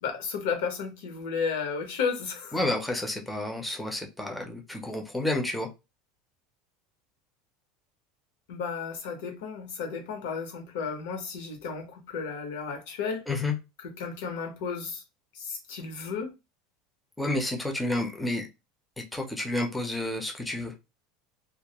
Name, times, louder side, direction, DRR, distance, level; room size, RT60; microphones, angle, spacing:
voice 1, 0.0-2.6 8.5-13.2 13.8-15.0 15.3-16.3, left 5 dB, 85° left, 0.9 m, -33 dB
voice 2, 2.5-5.7 13.3-13.6 17.2-18.5 19.1-20.7, left 2 dB, 5° left, 0.4 m, -30 dB
2.2 x 2.1 x 2.8 m
cardioid pair, 175°, 0 cm